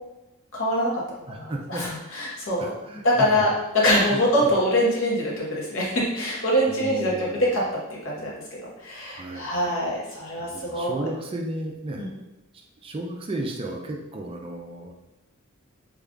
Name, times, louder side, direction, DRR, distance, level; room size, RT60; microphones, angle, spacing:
voice 1, 0.5-1.0 1.3-2.7 3.0-7.6 8.0-8.3 8.8-11.0 12.0-12.1, equal, 65° left, -4 dB, 1.1 m, -24 dB
voice 2, 1.3-1.8 2.6-3.4 4.1-4.5 6.6-7.5 8.9-9.7 10.4-12.1 12.8-14.9, right 2 dB, 25° right, 1 dB, 0.4 m, -34 dB
3.2 x 2.3 x 3.7 m, 0.98 s
head